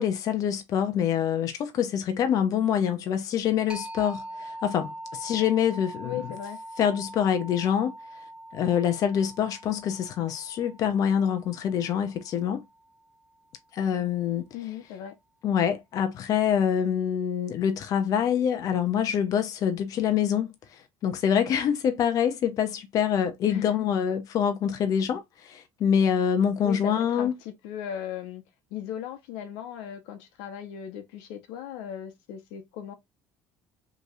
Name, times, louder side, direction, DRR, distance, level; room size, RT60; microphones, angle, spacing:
voice 1, 0.0-6.1 6.8-7.9 8.5-12.6 13.7-14.5 15.4-27.3, left 8 dB, 50° left, 0.8 m, -25 dB
sound 1, 3.7-13.1, right 1 dB, 15° right, 1.0 m, -43 dB
voice 2, 6.0-6.6 14.5-15.1 23.4-23.7 26.6-28.4 28.7-32.9, left 10 dB, 90° left, 1.1 m, -37 dB
5.1 x 3.1 x 2.5 m
cardioid pair, 120°, 7 cm